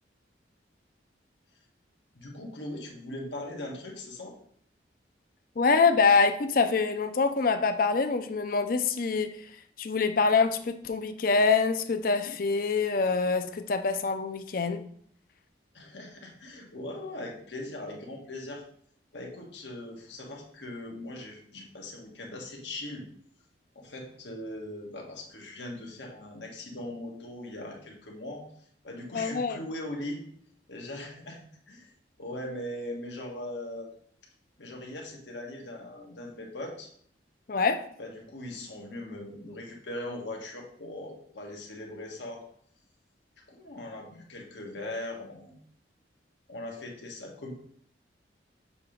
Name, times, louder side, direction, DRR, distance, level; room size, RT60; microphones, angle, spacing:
voice 1, 2.1-4.3 15.7-18.6 19.1-23.1 23.7-28.4 28.8-30.2 30.7-31.4 31.7-31.9 32.2-33.9 34.6-36.9 38.0-42.4 43.5-45.6 46.5-47.5, left 1 dB, 85° left, 0 dB, 1.4 m, -40 dB
voice 2, 5.6-9.4 9.8-14.8 29.1-29.6 37.5-37.8, left 4 dB, 50° left, 9 dB, 0.5 m, -25 dB
7.1 x 2.9 x 5.0 m, 0.62 s
head